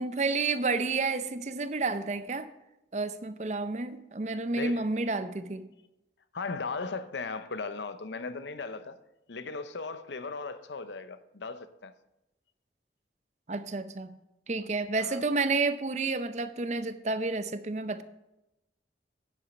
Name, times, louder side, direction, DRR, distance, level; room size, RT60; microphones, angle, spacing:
voice 1, 0.0-2.5 2.9-5.7 13.5-14.2 14.5-18.0, right 3 dB, 40° right, 0.6 m, -30 dB
voice 2, 4.5-4.9 6.3-9.0 9.3-11.9 15.0-15.2, left 4 dB, 80° left, 0.7 m, -37 dB
10.0 x 7.5 x 5.1 m
head